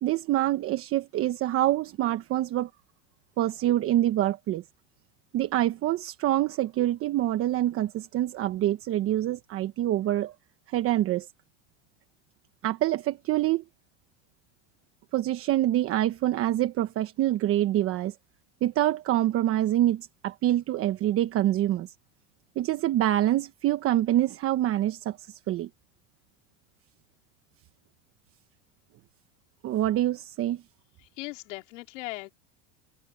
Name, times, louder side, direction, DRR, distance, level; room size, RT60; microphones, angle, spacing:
voice 1, 0.0-2.7 3.4-4.6 5.3-10.3 10.7-11.3 12.6-13.6 15.1-18.1 18.6-21.9 22.6-25.7 29.6-30.6, right 13 dB, 35° right, 1.2 m, -26 dB
voice 2, 31.0-32.3, left 21 dB, 80° left, 2.6 m, -38 dB
supercardioid pair, 135°, 37 cm